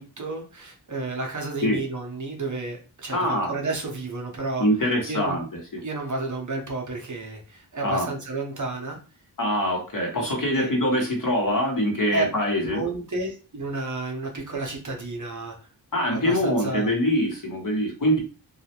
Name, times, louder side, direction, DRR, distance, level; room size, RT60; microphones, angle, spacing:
voice 1, 0.0-4.7 5.1-5.4 5.8-9.0 10.5-10.7 12.1-12.2 12.6-15.7 16.1-16.9, right 3 dB, 45° right, 1 dB, 0.7 m, -31 dB
voice 2, 3.1-3.5 4.6-5.4 5.7-5.8 7.8-8.1 9.4-12.8 15.9-18.2, equal, 50° left, 0 dB, 0.9 m, -24 dB
2.3 x 2.1 x 2.8 m, 0.35 s
wide cardioid pair, 80°, 43 cm